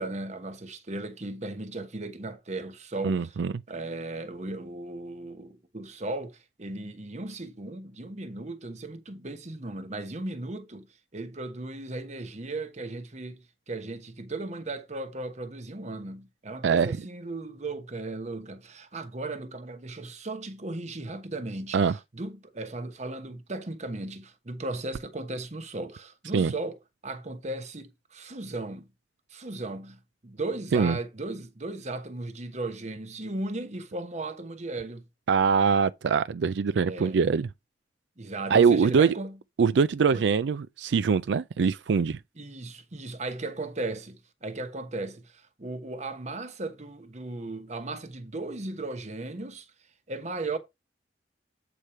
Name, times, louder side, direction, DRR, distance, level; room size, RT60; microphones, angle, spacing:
voice 1, 0.0-3.4 3.7-10.9 11.1-21.8 22.1-28.9 29.3-35.0 36.8-37.1 38.2-39.4 40.1-40.2 42.4-49.7 50.1-50.6, right 2 dB, 40° right, 1.1 m, -36 dB
voice 2, 3.0-3.5 16.6-17.0 21.7-22.0 26.3-26.5 30.7-31.0 35.3-37.5 38.5-39.1 39.6-42.2, right 5 dB, 85° right, 0.4 m, -23 dB
8.2 x 5.0 x 4.3 m
head